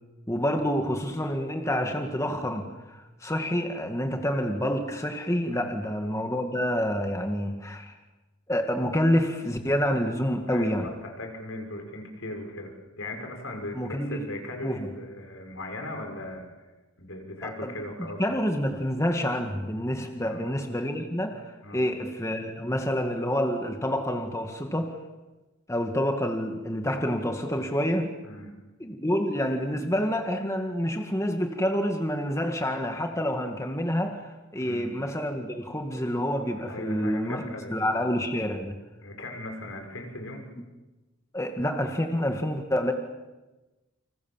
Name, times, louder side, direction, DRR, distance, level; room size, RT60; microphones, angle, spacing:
voice 1, 0.3-7.9 8.5-10.9 13.7-14.2 14.6-14.9 17.4-17.7 18.2-25.0 25.7-28.1 28.8-34.3 34.5-37.4 37.7-38.7 41.3-42.9, equal, 15° left, 4 dB, 2.0 m, -28 dB
voice 2, 10.5-16.6 17.0-18.2 20.2-20.5 21.6-21.9 28.2-28.5 34.6-35.0 36.6-38.0 39.0-40.4, left 1 dB, 70° left, 3 dB, 6.5 m, -38 dB
30.0 x 26.5 x 7.5 m, 1.1 s
head